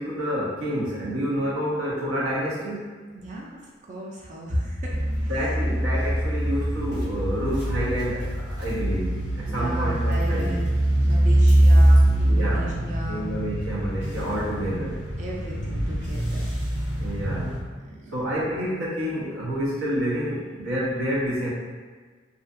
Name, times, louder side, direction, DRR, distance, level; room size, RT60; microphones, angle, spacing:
voice 1, 0.0-2.8 5.3-10.5 12.3-12.7 13.1-15.0 17.0-17.6 18.1-21.5, equal, 90° right, -6 dB, 0.8 m, -28 dB
voice 2, 3.1-5.3 9.5-10.7 11.0-13.3 14.5-14.9 15.2-16.5 17.8-18.1, equal, 40° right, -3 dB, 0.4 m, -35 dB
sound 1, 4.9-17.6, right 1 dB, 60° right, 0.8 m, -23 dB
2.5 x 2.4 x 2.4 m, 1.5 s
head